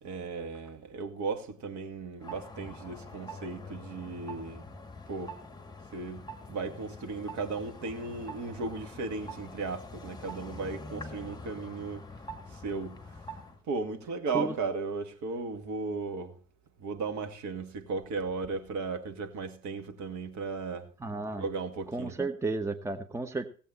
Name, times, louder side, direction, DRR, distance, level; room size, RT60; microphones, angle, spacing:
voice 1, 0.0-4.6 5.1-5.3 5.9-12.0 12.5-13.0 13.7-16.3 16.8-20.9 21.4-22.1, right 4 dB, 45° right, 2.2 m, -36 dB
sound 1, 2.2-13.6, left 1 dB, 10° left, 2.2 m, -45 dB
voice 2, 21.0-21.4 21.9-23.5, right 3 dB, 5° right, 1.0 m, -32 dB
17.5 x 8.5 x 4.2 m
figure-of-eight pair, 65°, 39 cm